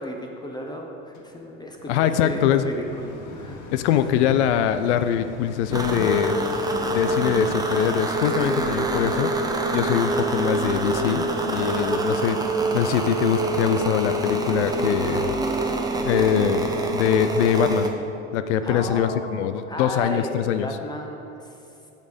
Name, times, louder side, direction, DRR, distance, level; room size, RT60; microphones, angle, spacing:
voice 1, 0.0-3.6 18.6-21.6, left 1 dB, 10° left, 1 dB, 0.9 m, -34 dB
sound 1, 1.1-12.4 13.0-13.1, left 3 dB, 50° left, 1.3 m, -42 dB
voice 2, 1.9-2.7 3.7-6.4 6.9-9.4 9.7-12.5 12.7-15.4 16.0-17.9 18.3-20.7, left 9 dB, 65° left, 11 dB, 0.5 m, -23 dB
sound 2, 5.7-17.9, right 2 dB, 10° right, 0.8 m, -25 dB
8.0 x 6.7 x 5.2 m, 2.7 s
hypercardioid pair, 85°, 37 cm